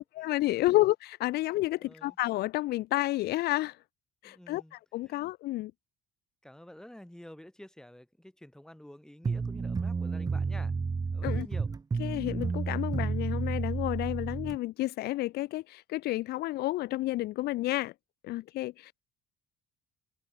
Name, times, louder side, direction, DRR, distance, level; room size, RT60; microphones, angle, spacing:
voice 1, 0.0-3.8 4.2-5.7 11.2-11.5 12.0-17.9 18.2-19.0, left 17 dB, 75° left, 0.6 m, -30 dB
voice 2, 1.8-2.2 4.2-4.7 5.1-5.2 6.4-10.7 11.1-11.7, left 1 dB, 5° left, 6.6 m, -50 dB
sound 1, 9.2-14.6, right 4 dB, 20° right, 0.9 m, -31 dB
cardioid pair, 110°, 17 cm